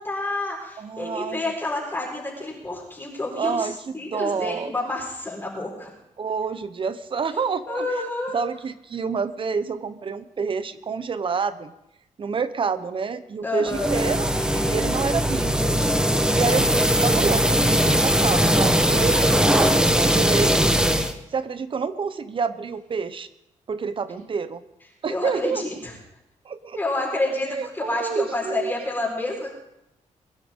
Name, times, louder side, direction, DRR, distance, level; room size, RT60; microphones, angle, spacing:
voice 1, 0.0-3.7 3.9-5.9 7.7-8.3 13.4-13.9 19.1-20.2 25.1-25.9 26.7-29.5, left 2 dB, 15° left, -4 dB, 4.5 m, -29 dB
voice 2, 0.8-1.5 3.4-4.7 6.2-7.9 8.3-11.7 12.2-15.8 16.3-16.7 17.0-20.5 21.3-23.3 23.7-24.6 25.0-25.6 26.4-26.8 27.5-28.7, right 5 dB, 40° right, 13 dB, 0.8 m, -28 dB
sound 1, 13.7-21.1, equal, 5° right, 1.0 m, -20 dB
22.0 x 11.5 x 3.7 m, 0.84 s
cardioid pair, 125°, 13 cm